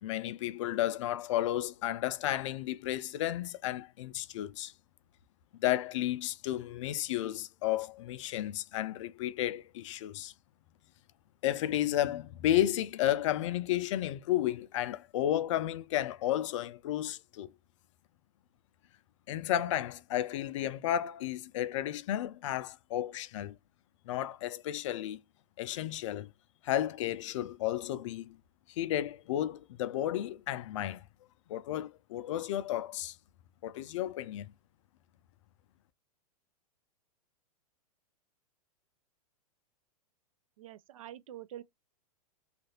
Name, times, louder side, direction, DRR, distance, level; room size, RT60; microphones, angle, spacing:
voice 1, 0.0-4.7 5.6-10.3 11.4-17.5 19.3-23.5 24.1-25.2 25.6-26.3 26.6-28.4 28.7-31.0 31.5-33.2 33.6-34.5, left 12 dB, 50° left, 0.4 m, -32 dB
voice 2, 40.6-41.6, right 12 dB, 60° right, 0.4 m, -46 dB
3.1 x 2.5 x 2.7 m
figure-of-eight pair, 100°, 20 cm